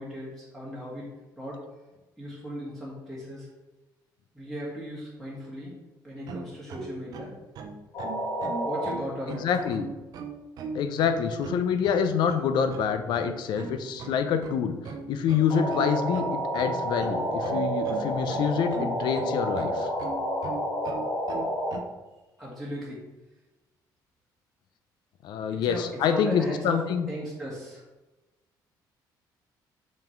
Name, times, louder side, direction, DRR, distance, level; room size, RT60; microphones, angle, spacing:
voice 1, 0.0-1.6 2.2-3.5 4.3-5.7 6.0-7.3 8.6-9.5 22.4-23.0 25.5-26.8 27.1-27.8, equal, 5° left, -7 dB, 1.6 m, -37 dB
sound 1, 6.3-21.8, right 4 dB, 55° right, 0.7 m, -38 dB
sound 2, 7.9-8.9 9.5-9.6 15.5-21.7, equal, 55° left, 2.3 m, -30 dB
voice 2, 9.4-9.9 10.7-14.8 15.1-19.9 25.2-27.1, left 7 dB, 70° left, 9 dB, 0.7 m, -26 dB
5.9 x 5.3 x 4.5 m, 1.1 s
cardioid pair, 160°, 8 cm